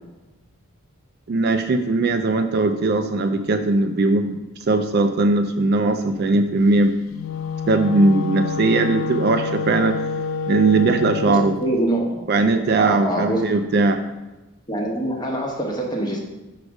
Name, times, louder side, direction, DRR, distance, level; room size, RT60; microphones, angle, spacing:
voice 1, 1.3-4.4 4.7-7.0 7.7-10.0 10.5-11.6 12.3-14.0, right 3 dB, 45° right, 7 dB, 0.3 m, -19 dB
Wind instrument woodwind instrument, 7.1-11.6, left 5 dB, 65° left, 0.3 m, -27 dB
voice 2, 11.3-12.1 12.8-13.4 14.7-16.2, right 1 dB, 20° left, 0 dB, 0.9 m, -24 dB
4.9 x 4.8 x 5.2 m, 1.1 s
head